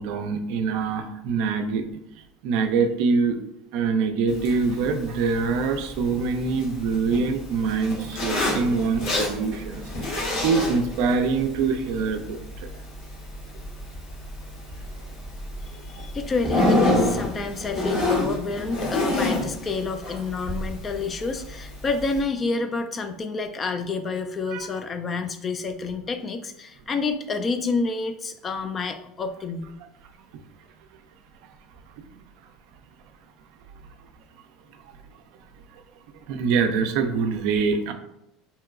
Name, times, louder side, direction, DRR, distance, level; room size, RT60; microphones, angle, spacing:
voice 1, 0.0-1.9 2.4-3.4 3.7-12.7 24.5-24.6 32.0-32.1 36.3-37.9, right 5 dB, 70° right, 7 dB, 0.4 m, -24 dB
Zipper (clothing), 4.3-22.2, left 1 dB, 65° left, 1.3 m, -29 dB
voice 2, 15.8-29.7, left 4 dB, 30° left, 8 dB, 0.3 m, -29 dB
2.9 x 2.8 x 2.3 m, 0.81 s
supercardioid pair, 95°, 0 cm